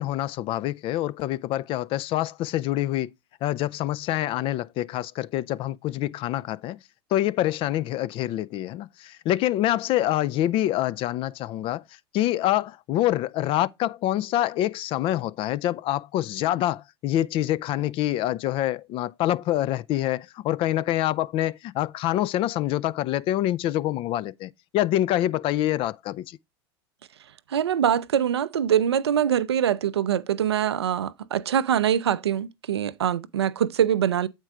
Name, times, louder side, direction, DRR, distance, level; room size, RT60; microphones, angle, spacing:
voice 1, 0.0-3.1 3.4-6.8 7.1-11.8 12.1-26.4, left 14 dB, 40° left, 0.4 m, -26 dB
voice 2, 27.5-34.3, right 9 dB, 80° right, 0.5 m, -23 dB
8.0 x 4.5 x 4.8 m
hypercardioid pair, 85°, 13 cm